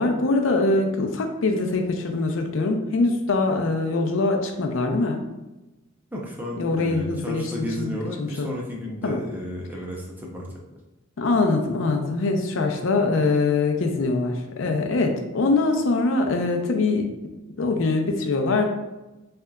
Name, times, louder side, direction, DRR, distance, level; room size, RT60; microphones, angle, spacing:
voice 1, 0.0-5.2 6.6-7.5 7.8-8.5 9.0-9.2 11.2-17.1 17.6-18.6, left 3 dB, 65° left, 3 dB, 0.5 m, -23 dB
voice 2, 6.1-10.6, equal, 10° right, -2 dB, 0.5 m, -33 dB
3.7 x 3.3 x 2.2 m, 1.0 s
head